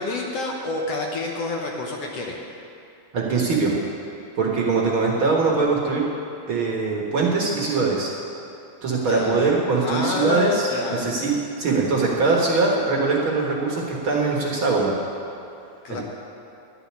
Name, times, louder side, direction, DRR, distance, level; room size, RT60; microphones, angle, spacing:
voice 1, 0.0-2.4 8.9-9.5 9.8-11.1 15.8-16.0, left 3 dB, 60° left, -1 dB, 2.0 m, -28 dB
voice 2, 3.1-3.7 4.4-6.0 6.5-8.1 8.8-11.3 11.6-14.9 15.9-16.0, right 4 dB, 50° right, -3 dB, 1.9 m, -22 dB
12.0 x 6.9 x 9.8 m, 2.7 s
omnidirectional pair, 3.4 m